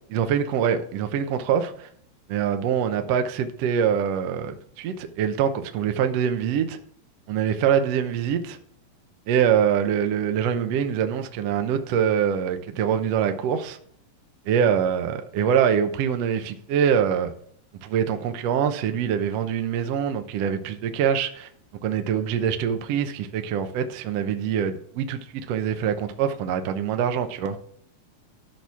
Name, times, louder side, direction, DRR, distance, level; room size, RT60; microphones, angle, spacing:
voice 1, 0.1-1.9 2.3-6.8 7.3-8.6 9.3-13.8 14.5-17.3 17.8-21.5 21.8-25.2 25.5-27.6, right 8 dB, 75° right, 1.5 m, -24 dB
13.0 x 6.1 x 3.5 m
omnidirectional pair, 3.9 m